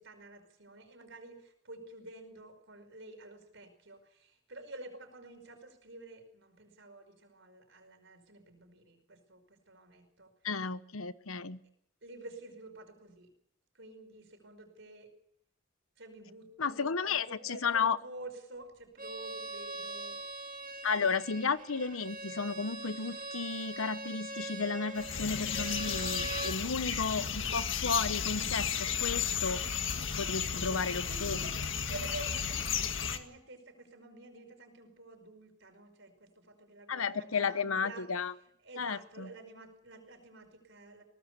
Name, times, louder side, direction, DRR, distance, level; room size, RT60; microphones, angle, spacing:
voice 1, 0.0-10.3 12.0-13.3 13.7-15.1 16.0-20.2 30.6-31.6 31.8-38.3 38.6-41.0, right 2 dB, 60° right, 7 dB, 5.4 m, -50 dB
voice 2, 10.4-11.6 16.6-18.0 20.8-29.6 30.2-31.4 36.9-38.3 38.8-39.3, left 5 dB, 85° left, 14 dB, 0.9 m, -33 dB
Bowed string instrument, 19.0-26.6, right 2 dB, 40° right, 2.3 m, -42 dB
sound 1, 25.0-33.2, left 7 dB, 65° left, 1.7 m, -34 dB
22.0 x 18.5 x 6.9 m, 0.70 s
head